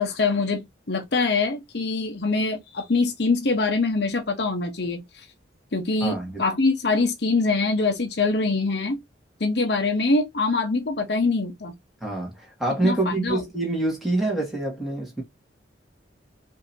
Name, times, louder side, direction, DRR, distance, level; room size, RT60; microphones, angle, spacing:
voice 1, 0.0-5.0 5.7-9.0 9.4-11.7 12.8-13.4, left 3 dB, 60° left, 0.8 m, -24 dB
voice 2, 6.0-6.4 12.0-15.2, right 2 dB, ahead, 1.7 m, -26 dB
5.3 x 2.8 x 2.6 m
head